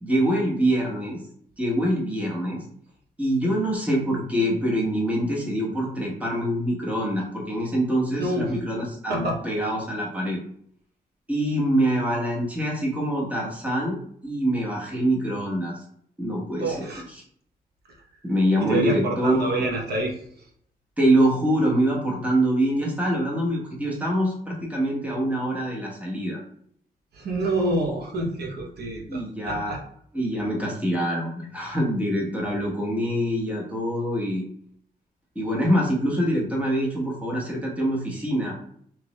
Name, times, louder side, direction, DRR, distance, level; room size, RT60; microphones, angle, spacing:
voice 1, 0.0-1.2 1.6-2.6 3.2-10.4 11.3-14.0 14.2-15.8 16.2-16.9 18.2-19.7 21.0-26.4 29.1-29.8 30.1-34.4 35.3-38.6, right 1 dB, 10° right, -3 dB, 1.0 m, -25 dB
voice 2, 8.2-8.5 9.1-9.4 16.6-17.0 18.6-20.2 27.1-29.8, right 2 dB, 85° right, 1 dB, 0.8 m, -27 dB
3.3 x 3.0 x 3.0 m, 0.65 s
wide cardioid pair, 145°, 16 cm